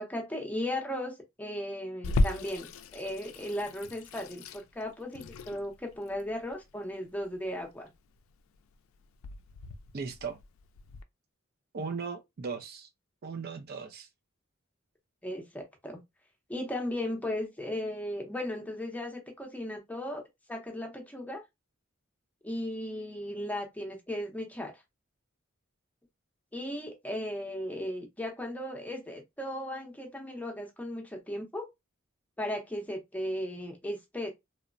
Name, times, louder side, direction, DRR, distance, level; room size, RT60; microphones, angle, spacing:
voice 1, 0.0-7.9 15.2-16.0 16.5-20.2 20.5-21.4 22.4-24.8 26.5-31.7 32.4-34.3, left 1 dB, 10° left, 0.6 m, -36 dB
Water tap faucet / Sink (filling or washing), 2.0-11.0, left 2 dB, 85° left, 0.3 m, -36 dB
voice 2, 9.9-10.4 11.7-12.9 13.2-14.1, right 5 dB, 50° right, 0.4 m, -37 dB
3.0 x 2.1 x 2.4 m
head